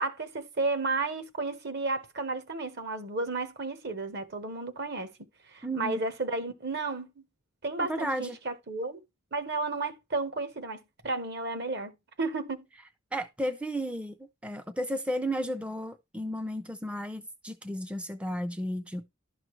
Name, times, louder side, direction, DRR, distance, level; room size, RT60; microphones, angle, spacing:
voice 1, 0.0-5.1 5.5-7.2 7.6-9.0 9.3-11.9 12.2-12.6, right 3 dB, 55° right, 1.1 m, -32 dB
voice 2, 5.6-6.0 7.8-8.4 13.1-14.1 14.4-19.0, equal, 5° right, 0.5 m, -33 dB
11.5 x 6.1 x 3.2 m
head